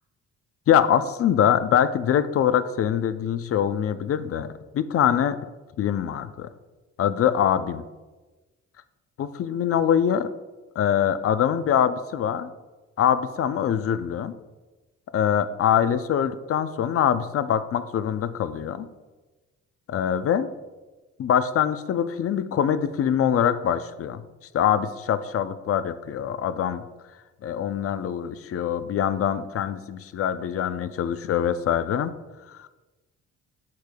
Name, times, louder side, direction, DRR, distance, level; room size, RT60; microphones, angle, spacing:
voice 1, 0.7-4.5 4.7-5.4 5.8-6.5 7.0-7.8 9.2-10.3 10.8-12.5 13.0-14.3 15.1-18.9 19.9-20.5 21.2-24.2 24.5-26.8 27.4-32.1 32.5-32.7, left 9 dB, 50° left, 12 dB, 0.5 m, -23 dB
8.3 x 6.4 x 2.3 m, 1.2 s
cardioid pair, 90°, 30 cm